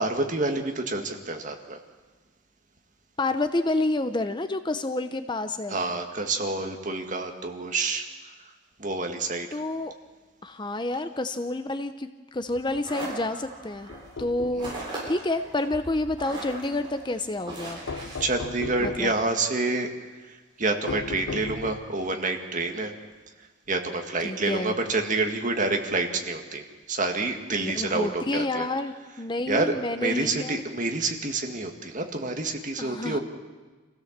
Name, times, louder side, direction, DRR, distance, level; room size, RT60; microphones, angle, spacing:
voice 1, 0.0-1.8 5.7-8.3 8.8-9.6 14.6-14.7 18.2-19.9 20.3-22.9 23.7-28.7 29.5-33.2, right 3 dB, 40° right, 4 dB, 1.9 m, -28 dB
voice 2, 3.2-5.8 9.5-9.9 10.4-13.9 14.2-14.7 15.1-17.8 18.8-19.1 24.2-24.8 27.6-30.6 32.8-33.2, left 2 dB, 20° left, 9 dB, 0.7 m, -29 dB
sound 1, 12.4-19.2, right 2 dB, 25° right, 7.7 m, -40 dB
sound 2, 13.9-14.9 17.9-19.2 20.9-22.0, left 3 dB, 75° left, 0.7 m, -36 dB
26.0 x 16.5 x 7.4 m, 1.4 s
head